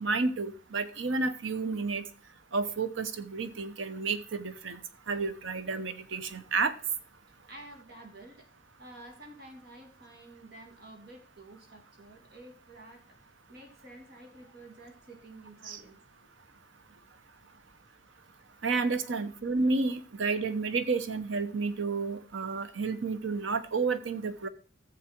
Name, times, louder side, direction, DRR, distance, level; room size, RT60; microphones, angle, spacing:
voice 1, 0.0-2.0 2.5-4.8 5.1-6.8 15.6-15.8 18.6-24.5, right 4 dB, 75° right, 11 dB, 0.9 m, -31 dB
voice 2, 7.5-8.5 8.8-16.0 17.4-17.6 19.0-19.1, right 1 dB, 55° right, 3 dB, 2.7 m, -51 dB
14.0 x 7.5 x 4.5 m, 0.40 s
head